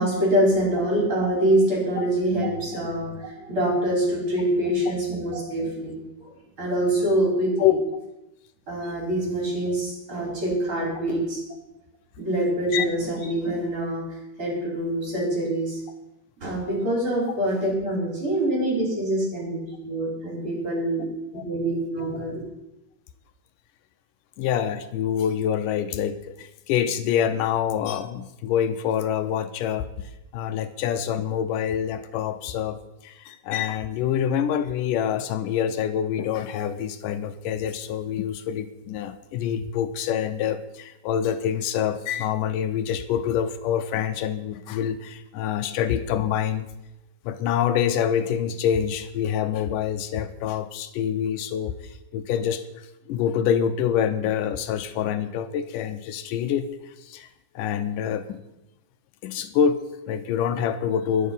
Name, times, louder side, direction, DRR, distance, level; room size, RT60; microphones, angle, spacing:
voice 1, 0.0-6.3 6.6-7.7 8.7-11.4 12.2-14.0 14.4-15.8 16.4-21.1 21.4-22.4, right 1 dB, 40° right, -3 dB, 5.6 m, -25 dB
voice 2, 24.4-46.7 47.3-57.3 57.6-58.4 59.2-61.3, left 9 dB, 80° left, 9 dB, 2.3 m, -26 dB
22.0 x 7.5 x 5.5 m, 0.90 s
omnidirectional pair, 3.8 m